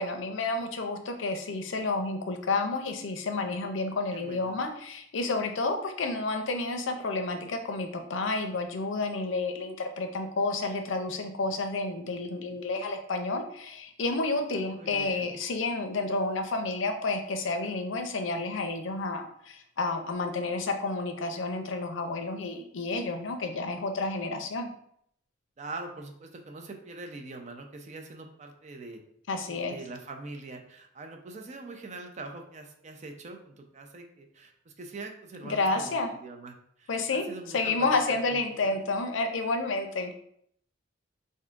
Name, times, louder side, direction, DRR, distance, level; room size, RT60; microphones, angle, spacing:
voice 1, 0.0-24.7 29.3-29.8 35.4-36.1 36.9-37.2 37.5-40.1, left 3 dB, 70° left, 6 dB, 0.5 m, -30 dB
voice 2, 4.1-4.6 14.8-15.3 25.6-29.0 29.5-37.7 38.1-38.7, right 3 dB, 35° right, 4 dB, 0.5 m, -43 dB
3.6 x 2.7 x 3.5 m, 0.69 s
head